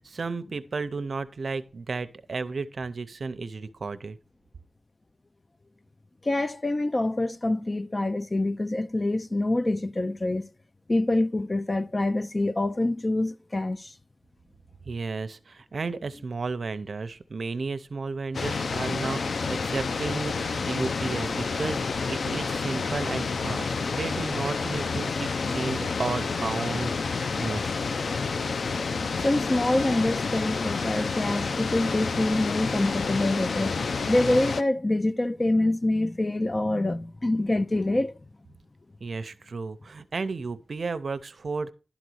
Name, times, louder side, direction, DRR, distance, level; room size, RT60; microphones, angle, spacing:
voice 1, 0.0-4.2 14.9-26.9 27.4-27.8 39.0-41.7, right 4 dB, 70° right, 0.6 m, -33 dB
voice 2, 6.2-10.5 10.9-13.9 29.2-33.8 34.1-38.2, left 2 dB, 30° left, 0.4 m, -26 dB
sound 1, 18.3-34.6, left 4 dB, 85° left, 0.4 m, -29 dB
11.5 x 4.0 x 6.2 m
wide cardioid pair, 110°, 0 cm